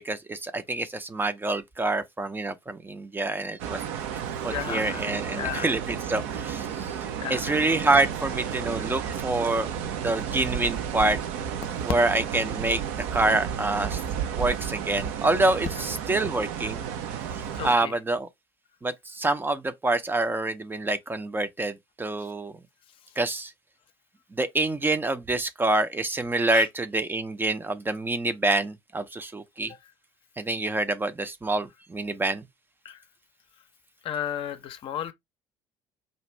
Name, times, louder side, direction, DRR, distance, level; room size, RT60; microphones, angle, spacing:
voice 1, 0.0-3.8 4.4-6.9 7.3-9.7 10.0-11.2 11.8-12.8 13.1-14.0 14.4-16.8 17.6-18.3 18.8-22.5 23.2-23.5 24.3-29.7 30.4-32.4, right 2 dB, 15° right, 0.6 m, -26 dB
sound 1, 3.6-17.8, right 8 dB, 60° right, 0.6 m, -32 dB
voice 2, 4.5-5.7 7.2-7.6 17.5-18.0 26.4-26.7 32.8-33.0 34.0-35.1, left 10 dB, 45° left, 0.6 m, -33 dB
5.2 x 2.4 x 3.1 m
figure-of-eight pair, 55°, 12 cm